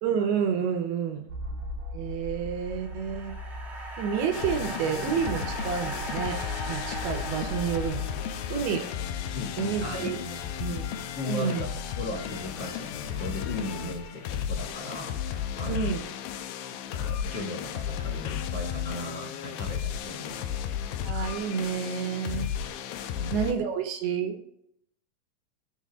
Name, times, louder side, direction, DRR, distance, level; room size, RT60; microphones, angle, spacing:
voice 1, 0.0-1.2 1.9-3.4 4.0-8.2 8.5-8.9 9.6-10.2 10.6-10.8 11.2-11.6 15.7-16.1 21.0-22.5 23.3-24.4, right 7 dB, 75° right, 6 dB, 2.7 m, -29 dB
sound 1, 1.3-7.9, equal, 60° right, 1.5 m, -39 dB
sound 2, 2.4-8.8, right 1 dB, 40° right, 0.8 m, -39 dB
sound 3, 4.3-23.5, left 9 dB, 85° left, 2.1 m, -34 dB
voice 2, 9.3-10.8 11.1-15.8 16.9-20.5 23.1-23.3, left 2 dB, 50° left, -1 dB, 2.1 m, -37 dB
14.0 x 6.8 x 2.4 m, 0.75 s
omnidirectional pair, 4.7 m